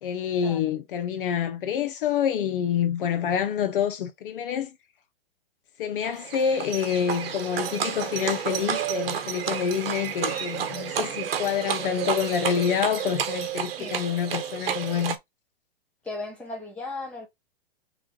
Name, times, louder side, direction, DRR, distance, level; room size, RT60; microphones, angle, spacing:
voice 1, 0.0-4.7 5.8-15.2, left 8 dB, 60° left, 0.8 m, -27 dB
Livestock farm animals working animals, 6.0-15.2, right 9 dB, 70° right, 0.9 m, -31 dB
voice 2, 16.0-17.3, left 2 dB, 5° left, 1.5 m, -36 dB
3.6 x 3.2 x 3.8 m
hypercardioid pair, 140°, 30 cm